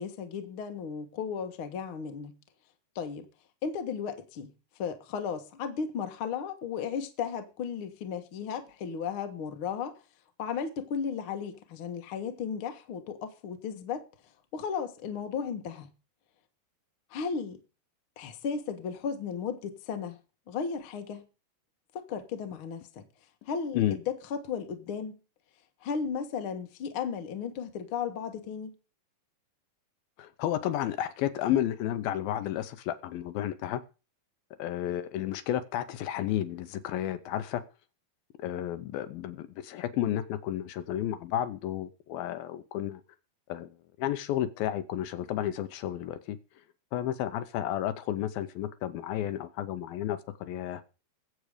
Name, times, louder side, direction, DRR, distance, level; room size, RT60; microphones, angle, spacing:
voice 1, 0.0-2.3 2.9-3.3 3.6-4.5 4.8-10.0 10.4-14.0 14.5-15.9 17.1-17.6 18.2-20.2 20.5-21.2 21.9-23.0 23.5-25.2 25.8-28.7, left 6 dB, 55° left, 1.4 m, -35 dB
voice 2, 30.2-33.8 34.6-37.6 38.4-43.0 43.5-43.7 44.0-46.4 46.9-50.8, left 12 dB, 75° left, 2.4 m, -32 dB
21.0 x 7.9 x 5.0 m
omnidirectional pair, 4.6 m